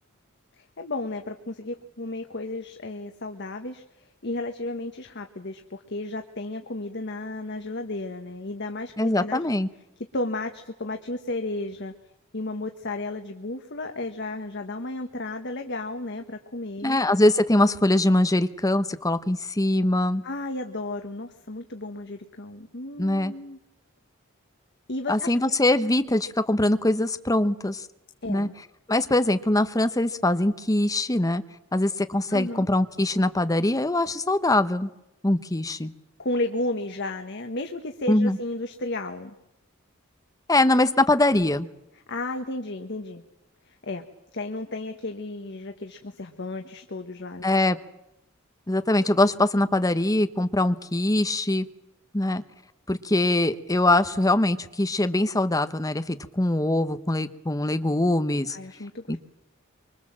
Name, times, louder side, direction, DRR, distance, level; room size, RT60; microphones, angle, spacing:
voice 1, 0.6-3.8 4.2-9.4 10.1-11.9 12.3-17.0 20.2-23.6 24.9-25.6 28.2-28.5 32.3-32.7 36.2-39.3 42.1-43.2 43.6-44.0 44.3-47.6 58.5-59.2, left 2 dB, 55° left, 5 dB, 1.4 m, -33 dB
voice 2, 9.0-9.7 16.8-20.2 23.0-23.3 25.1-27.8 28.3-28.5 28.9-31.4 31.7-34.9 35.2-35.9 38.1-38.4 40.5-41.7 47.4-47.8 48.7-51.7 52.1-52.4 52.9-58.6 59.1-59.2, left 1 dB, 15° left, 10 dB, 1.0 m, -22 dB
25.0 x 24.0 x 7.5 m, 0.87 s
head